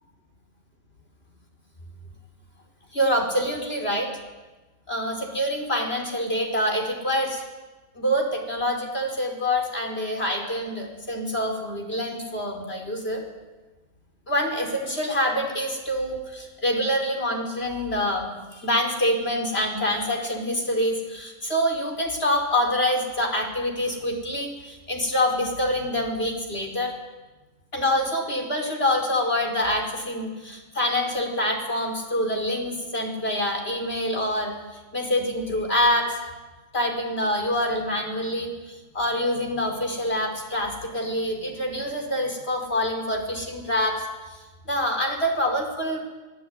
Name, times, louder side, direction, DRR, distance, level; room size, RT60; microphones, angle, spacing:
voice 1, 2.9-4.1 4.9-7.4 8.0-13.2 14.3-26.9 27.7-34.5 34.9-36.2 36.7-44.1 44.7-46.0, left 1 dB, 50° left, 2 dB, 5.4 m, -26 dB
27.0 x 16.5 x 9.6 m, 1.2 s
omnidirectional pair, 1.4 m